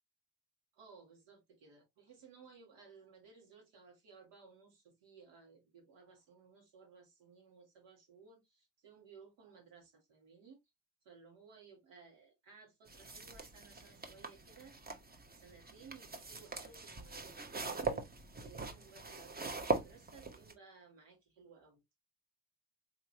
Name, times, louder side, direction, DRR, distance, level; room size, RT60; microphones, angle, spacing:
voice 1, 0.7-10.6 11.0-14.8 15.3-18.1 18.4-21.8, right 5 dB, 75° right, 2.1 m, -59 dB
sound 1, 12.9-20.5, right 3 dB, 20° right, 1.0 m, -42 dB
3.7 x 3.0 x 2.8 m
hypercardioid pair, 55°, 43 cm